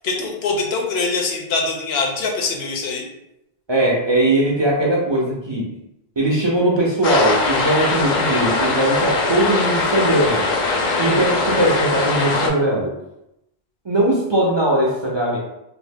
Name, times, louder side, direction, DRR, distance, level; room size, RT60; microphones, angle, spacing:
voice 1, 0.0-3.0, left 3 dB, 80° left, 1 dB, 0.9 m, -23 dB
voice 2, 3.7-5.7 6.2-10.5 11.0-12.9 13.8-15.4, right 1 dB, 45° right, -3 dB, 0.3 m, -19 dB
sound 1, 7.0-12.5, left 3 dB, 60° left, 0.6 m, -21 dB
2.7 x 2.1 x 3.3 m, 0.87 s
omnidirectional pair, 1.0 m